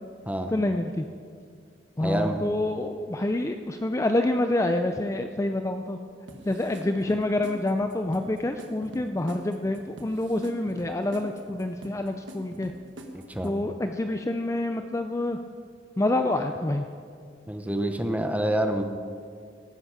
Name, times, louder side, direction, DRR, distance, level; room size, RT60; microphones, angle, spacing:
voice 1, 0.5-1.1 2.0-6.0 6.5-12.7 13.4-15.4 16.0-16.8, left 1 dB, 15° left, 6 dB, 0.5 m, -27 dB
voice 2, 2.0-2.5 13.1-13.5 17.5-18.8, right 1 dB, 10° right, 6 dB, 0.9 m, -27 dB
sound 1, 6.3-13.7, right 1 dB, 85° right, 1.5 m, -45 dB
17.5 x 10.0 x 5.0 m, 2.2 s
head